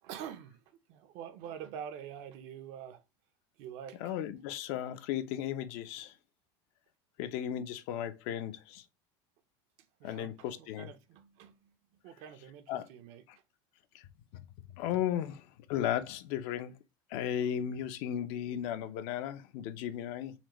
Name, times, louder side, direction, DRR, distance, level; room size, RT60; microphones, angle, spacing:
voice 1, 0.0-3.0 3.6-4.2 10.0-11.7 12.0-13.2, right 9 dB, 55° right, 0.6 m, -46 dB
voice 2, 4.0-6.1 7.2-8.8 10.0-10.9 12.7-12.9 14.8-15.4 15.7-16.7 17.1-20.3, left 10 dB, 55° left, 0.5 m, -35 dB
4.2 x 2.5 x 2.9 m
supercardioid pair, 155°, 13 cm